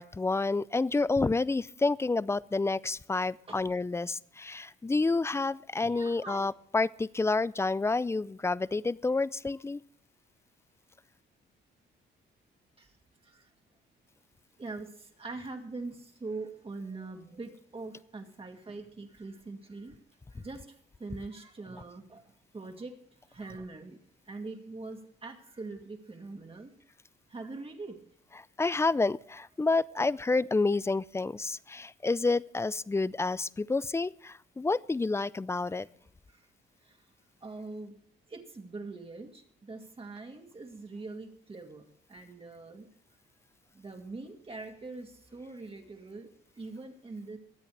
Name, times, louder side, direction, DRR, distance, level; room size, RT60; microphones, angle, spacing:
voice 1, 0.0-9.8 28.6-35.9, left 3 dB, 15° left, 20 dB, 0.4 m, -29 dB
voice 2, 5.8-6.5 12.8-12.9 13.2-13.5 14.6-20.0 20.3-23.0 23.3-24.0 24.3-26.7 27.3-28.0 35.8-35.9 36.3-36.5 36.8-37.0 37.4-38.0 38.3-42.9 43.7-47.4, right 3 dB, 30° right, 3 dB, 2.3 m, -43 dB
23.0 x 8.5 x 3.3 m, 0.66 s
cardioid pair, 90°, 20 cm